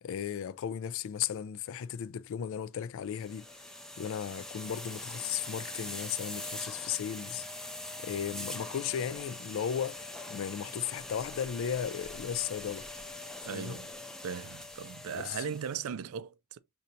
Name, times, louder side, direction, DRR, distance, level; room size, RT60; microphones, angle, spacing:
voice 1, 0.0-3.5 4.0-7.5 8.0-12.9 13.5-13.8 15.1-15.4, left 8 dB, 65° left, 0.3 m, -35 dB
sound 1, 3.1-15.8, left 1 dB, 5° left, 0.5 m, -43 dB
voice 2, 13.4-13.9 14.2-16.6, right 7 dB, 70° right, 0.4 m, -38 dB
4.3 x 2.7 x 2.6 m
head